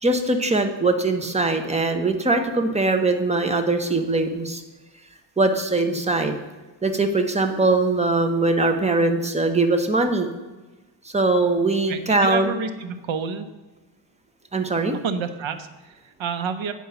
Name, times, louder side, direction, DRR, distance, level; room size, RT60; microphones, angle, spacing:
voice 1, 0.0-4.6 5.4-6.3 6.8-10.3 11.0-12.5 14.5-14.9, right 2 dB, 15° right, 6 dB, 0.9 m, -21 dB
voice 2, 11.9-13.5 14.9-16.7, right 5 dB, 85° right, 9 dB, 0.9 m, -29 dB
9.1 x 4.7 x 6.9 m, 1.2 s
cardioid pair, 115°, 46 cm